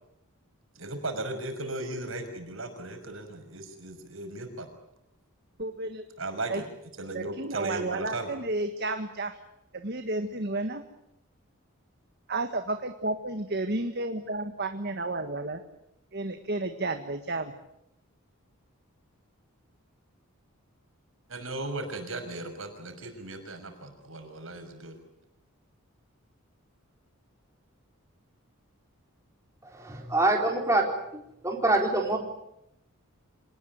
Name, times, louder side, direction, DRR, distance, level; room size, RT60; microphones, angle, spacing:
voice 1, 0.8-4.7 6.2-6.6 7.0-8.3 21.3-24.9, right 2 dB, 65° right, 6 dB, 6.0 m, -36 dB
voice 2, 5.6-6.0 6.5-6.6 7.1-9.4 9.7-10.8 12.3-15.6 16.1-17.5, right 2 dB, 50° right, 7 dB, 1.6 m, -32 dB
voice 3, 29.6-30.8 31.4-32.2, right 2 dB, 15° right, 1 dB, 3.9 m, -25 dB
26.5 x 19.5 x 9.5 m, 0.83 s
head